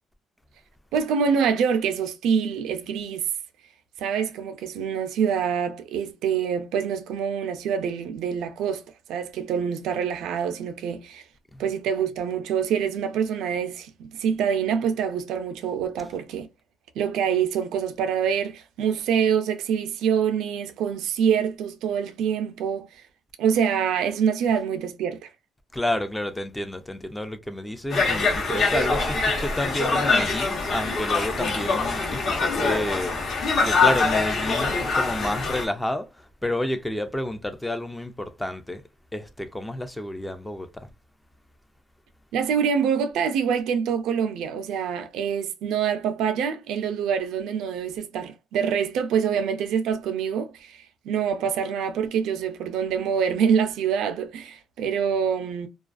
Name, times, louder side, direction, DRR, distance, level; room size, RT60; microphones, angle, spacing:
voice 1, 0.9-3.3 4.0-8.8 9.1-11.2 11.6-16.5 17.0-23.0 23.4-25.3 42.3-55.7, right 7 dB, 80° right, 0.4 m, -25 dB
voice 2, 25.7-33.1 33.6-38.8 39.1-40.9, left 1 dB, 10° left, 0.4 m, -30 dB
Conversation, 27.9-35.6, left 4 dB, 50° left, 0.8 m, -24 dB
2.3 x 2.3 x 2.4 m
cardioid pair, 135°, 0 cm